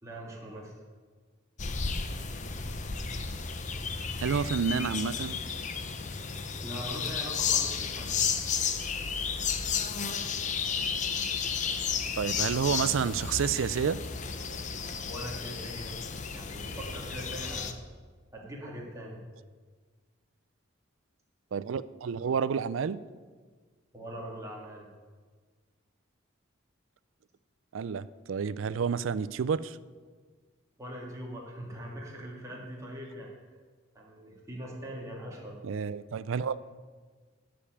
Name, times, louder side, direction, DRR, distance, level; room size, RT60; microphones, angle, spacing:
voice 1, 0.0-0.7 6.6-8.2 15.0-15.9 16.3-17.8 18.3-19.2 23.9-24.9 30.8-33.3 33.9-35.6, equal, 15° right, -4 dB, 2.2 m, -41 dB
sound 1, 1.6-17.7, left 6 dB, 35° left, 0.7 m, -33 dB
voice 2, 4.2-5.4 12.2-14.0 21.5-23.0 27.7-29.8 35.6-36.6, right 6 dB, 70° right, 17 dB, 0.4 m, -29 dB
11.5 x 5.2 x 8.7 m, 1.5 s
head